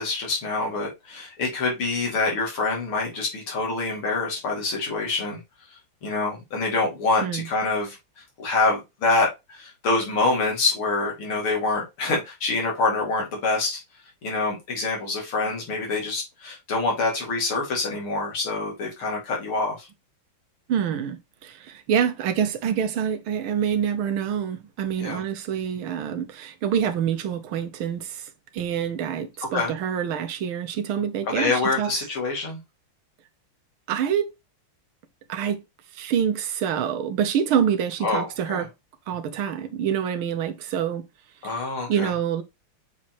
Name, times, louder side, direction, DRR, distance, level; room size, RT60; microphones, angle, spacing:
voice 1, 0.0-5.4 6.0-8.0 8.4-13.8 14.2-19.9 25.0-25.2 29.5-29.7 31.3-32.6 38.0-38.7 41.4-42.1, left 3 dB, 80° left, 3.4 m, -26 dB
voice 2, 20.7-32.1 33.9-34.4 35.3-35.6 35.9-38.7 39.1-41.0 41.4-41.6 41.9-42.4, right 8 dB, 75° right, 1.7 m, -26 dB
7.1 x 4.7 x 3.0 m
omnidirectional pair, 2.3 m